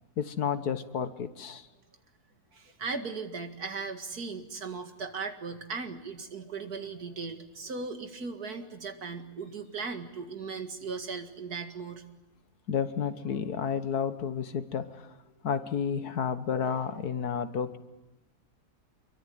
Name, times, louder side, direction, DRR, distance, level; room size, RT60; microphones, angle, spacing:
voice 1, 0.2-1.7 12.7-15.1 15.4-17.8, left 7 dB, 90° left, 11 dB, 1.9 m, -31 dB
voice 2, 2.5-12.0, right 4 dB, 80° right, 6 dB, 2.6 m, -37 dB
26.5 x 23.0 x 9.3 m, 1.0 s
omnidirectional pair, 1.6 m